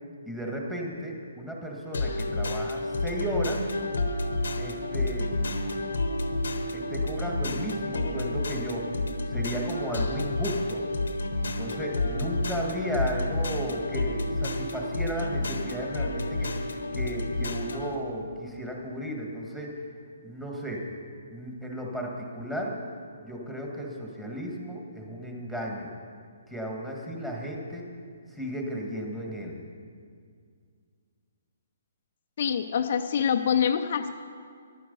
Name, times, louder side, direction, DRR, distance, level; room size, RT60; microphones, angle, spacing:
voice 1, 0.3-3.6 4.6-5.3 6.7-8.9 9.3-10.8 11.5-16.7 16.9-19.7 20.2-20.9 21.3-22.8 23.2-25.9 26.5-27.8 28.3-29.6, equal, 5° right, -1 dB, 1.7 m, -34 dB
sound 1, 1.9-17.9, left 2 dB, 85° left, 1.0 m, -30 dB
voice 2, 32.4-34.1, left 7 dB, 55° left, 7 dB, 0.5 m, -25 dB
11.0 x 9.4 x 5.4 m, 2.2 s
hypercardioid pair, 145°, 0 cm